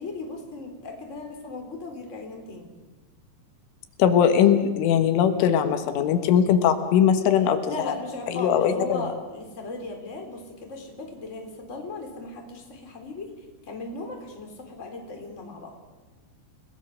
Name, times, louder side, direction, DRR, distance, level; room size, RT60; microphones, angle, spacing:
voice 1, 0.0-2.7 7.7-13.3 13.6-15.7, left 3 dB, 15° left, 2 dB, 3.1 m, -37 dB
voice 2, 4.0-7.6 8.4-9.0, left 8 dB, 85° left, 7 dB, 3.9 m, -20 dB
30.0 x 18.5 x 6.5 m, 1.2 s
omnidirectional pair, 5.6 m